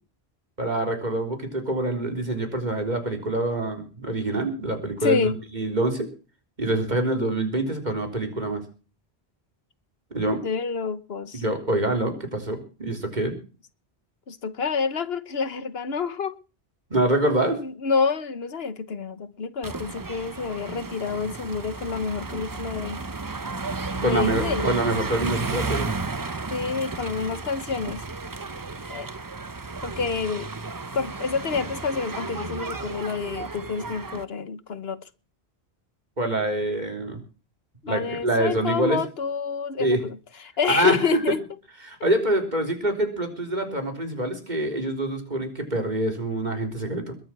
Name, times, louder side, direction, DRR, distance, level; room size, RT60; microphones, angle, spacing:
voice 1, 0.6-5.2 5.5-6.1 6.6-8.6 10.1-10.4 11.3-13.4 16.9-17.6 24.0-25.9 36.2-37.2 37.9-39.0 39.8-40.0 40.7-41.0 41.9-47.1, right 1 dB, 45° right, 3.9 m, -25 dB
voice 2, 5.0-5.4 10.3-11.4 14.3-16.4 17.6-23.0 24.0-24.7 26.5-28.0 28.9-29.1 29.8-30.5 30.9-35.0 37.8-40.2 40.6-41.4, left 5 dB, 70° left, 1.3 m, -28 dB
sound 1, 19.6-34.2, right 3 dB, 25° right, 0.6 m, -33 dB
21.5 x 7.7 x 6.1 m
omnidirectional pair, 1.1 m